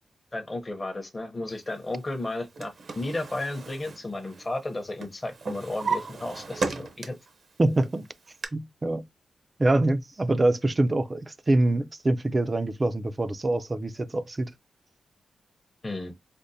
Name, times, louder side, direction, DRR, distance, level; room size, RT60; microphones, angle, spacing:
voice 1, 0.3-7.2 15.8-16.1, left 2 dB, 25° left, 0.7 m, -33 dB
Drawer open or close, 2.3-4.7 5.0-7.3 7.8-8.5, right 4 dB, 60° right, 0.7 m, -34 dB
voice 2, 7.6-8.0 8.5-9.0 9.6-14.5, right 2 dB, 25° right, 0.4 m, -25 dB
5.1 x 2.1 x 2.6 m
wide cardioid pair, 120°, 0 cm